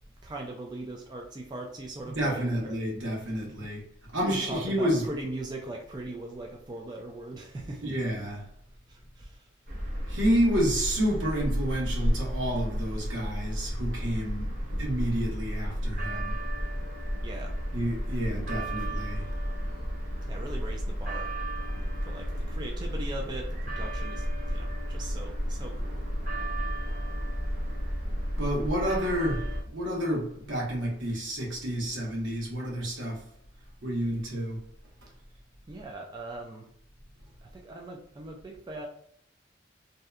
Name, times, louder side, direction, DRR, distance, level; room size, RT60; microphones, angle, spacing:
voice 1, 0.2-2.8 3.6-3.7 4.2-7.9 8.9-9.5 17.2-17.5 20.3-21.3 21.8-26.0 35.7-36.7 37.1-38.9, right 1 dB, 20° right, 0.3 m, -40 dB
voice 2, 2.1-3.8 4.1-5.2 7.8-8.5 10.1-14.5 14.8-16.4 17.7-19.3 28.4-33.3 33.8-34.7, equal, 80° right, 1.0 m, -29 dB
sound 1, 9.7-29.6, equal, 45° right, 0.7 m, -32 dB
2.7 x 2.1 x 2.3 m
head